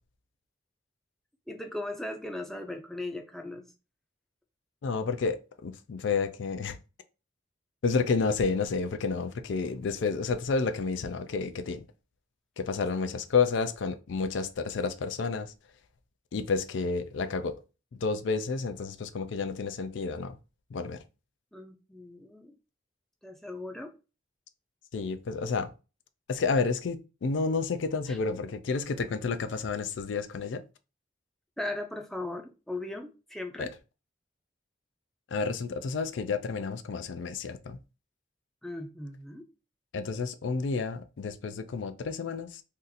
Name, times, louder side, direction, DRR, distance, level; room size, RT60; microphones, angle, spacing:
voice 1, 1.5-3.7 21.5-22.5 23.2-23.9 28.1-28.2 31.6-33.7 38.6-39.5, left 2 dB, ahead, 0.4 m, -38 dB
voice 2, 4.8-6.8 7.8-11.8 12.6-15.5 16.3-17.5 17.9-20.4 20.7-21.0 24.9-25.7 26.3-30.6 33.6-33.7 35.3-37.8 39.9-42.6, left 4 dB, 75° left, 0.4 m, -30 dB
2.7 x 2.5 x 3.9 m
head